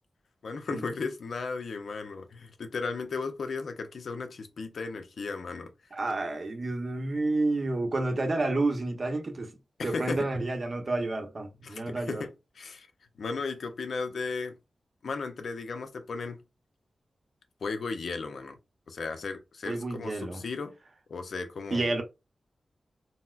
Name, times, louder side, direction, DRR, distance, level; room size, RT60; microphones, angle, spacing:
voice 1, 0.4-5.7 9.8-10.3 11.6-12.9 13.2-14.6 15.0-16.4 17.6-18.6 18.9-20.7 21.1-21.9, left 4 dB, 80° left, 0.6 m, -35 dB
voice 2, 5.9-9.5 9.8-12.3 19.7-20.4 21.7-22.0, right 2 dB, 45° right, 0.7 m, -30 dB
4.1 x 2.0 x 2.3 m
wide cardioid pair, 100°, 0 cm